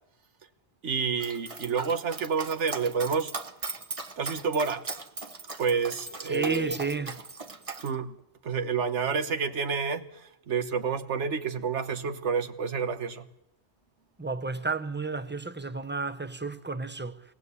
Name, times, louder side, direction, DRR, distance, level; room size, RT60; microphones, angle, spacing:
voice 1, 0.8-3.3 4.2-4.9 5.6-6.8 7.8-8.2 8.4-13.3, right 5 dB, 90° right, 1.6 m, -29 dB
Dog, 1.2-7.9, right 3 dB, 30° right, 1.2 m, -38 dB
voice 2, 6.3-7.2 14.2-17.2, right 4 dB, 10° right, 0.9 m, -32 dB
25.5 x 19.5 x 8.4 m
omnidirectional pair, 1.2 m